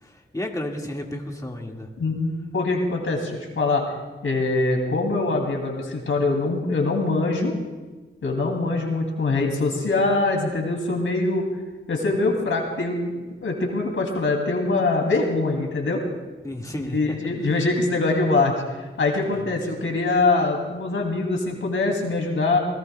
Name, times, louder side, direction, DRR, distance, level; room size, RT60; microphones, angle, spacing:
voice 1, 0.0-1.9 16.4-17.2 19.3-19.6, left 1 dB, 15° left, 0 dB, 1.8 m, -32 dB
voice 2, 2.0-3.8 4.2-7.6 8.2-11.5 11.9-16.0 16.9-18.5 19.0-22.6, left 3 dB, 85° left, 1 dB, 2.6 m, -23 dB
26.5 x 18.0 x 2.2 m, 1.2 s
wide cardioid pair, 75°, 21 cm